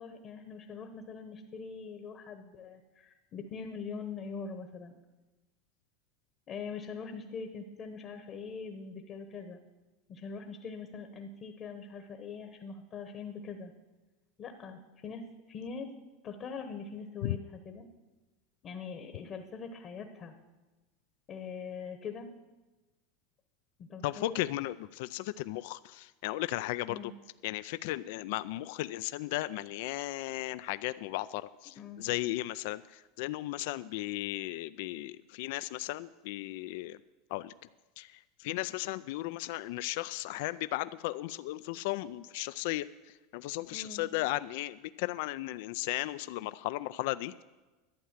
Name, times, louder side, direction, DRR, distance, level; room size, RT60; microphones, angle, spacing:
voice 1, 0.0-5.0 6.5-9.6 10.1-13.7 14.4-15.9 16.2-17.9 18.6-20.3 21.3-22.3 23.8-24.4 26.9-27.1 31.8-32.1 43.7-44.0, left 5 dB, 35° left, 7 dB, 1.0 m, -42 dB
voice 2, 24.0-27.1 27.4-37.0 37.3-37.5 38.0-38.1 38.4-42.9 43.3-47.4, left 17 dB, 70° left, 16 dB, 0.3 m, -35 dB
11.5 x 8.8 x 7.4 m, 1.2 s
supercardioid pair, 135°, 0 cm